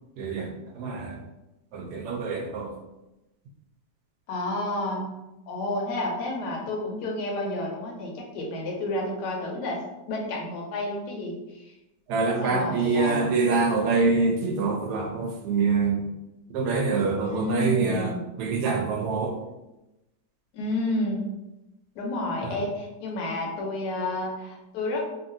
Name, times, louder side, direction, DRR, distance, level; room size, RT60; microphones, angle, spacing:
voice 1, 0.2-1.2 1.7-2.7 12.1-16.1 16.5-19.4 22.4-22.6, right 4 dB, 75° right, 2 dB, 1.1 m, -25 dB
voice 2, 4.3-5.1 5.5-9.8 10.1-11.7 12.4-13.3 17.2-18.2 20.5-21.3 22.0-25.0, left 2 dB, 80° left, -1 dB, 1.2 m, -30 dB
2.8 x 2.6 x 2.6 m, 0.97 s
omnidirectional pair, 1.8 m